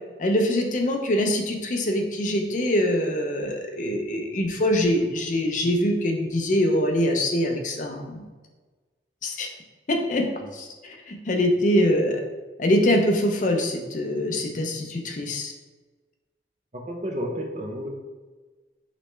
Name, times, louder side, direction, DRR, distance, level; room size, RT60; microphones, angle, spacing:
voice 1, 0.2-8.3 9.2-9.5 9.9-10.3 10.5-12.2 12.6-15.5, left 1 dB, 45° left, 3 dB, 0.5 m, -24 dB
voice 2, 16.7-17.9, equal, 40° right, 1 dB, 0.7 m, -32 dB
5.2 x 3.2 x 3.2 m, 1.3 s
head